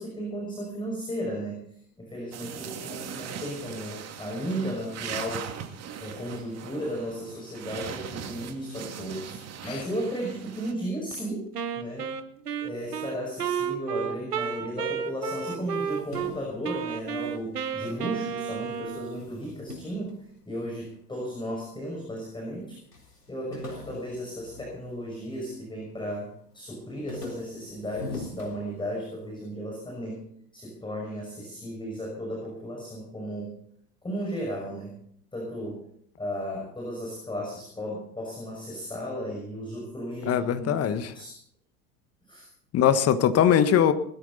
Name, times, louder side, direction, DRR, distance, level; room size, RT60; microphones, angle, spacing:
voice 1, 0.0-1.6 2.0-5.5 6.0-11.5 11.8-12.1 12.6-22.8 23.3-30.2 30.5-33.6 34.0-35.0 35.3-35.9 36.2-40.8 41.1-41.3 42.3-42.5, equal, 10° left, -1 dB, 5.9 m, -35 dB
sound 1, 2.3-10.7, right 8 dB, 35° right, 2.3 m, -40 dB
Wind instrument woodwind instrument, 11.5-16.3 16.6-19.3, right 7 dB, 80° right, 1.2 m, -32 dB
sound 2, 15.5-18.2 18.5-21.0 21.6-22.3 22.5-22.6 22.9-25.5 25.9-26.3 26.7-29.3, left 2 dB, 85° left, 3.9 m, -44 dB
voice 2, 40.3-41.1 42.7-43.9, left 9 dB, 30° left, 11 dB, 1.5 m, -21 dB
20.0 x 13.5 x 4.1 m, 0.66 s
figure-of-eight pair, 80°, 46 cm